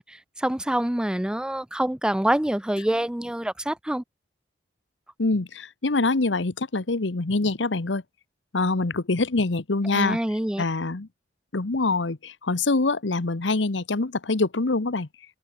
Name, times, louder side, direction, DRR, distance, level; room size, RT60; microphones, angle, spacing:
voice 1, 0.0-4.0 9.9-10.6, right 1 dB, 5° right, 0.4 m, -26 dB
voice 2, 5.2-8.0 8.5-10.2 10.6-11.1 11.5-15.1, left 3 dB, 90° left, 1.1 m, -25 dB
head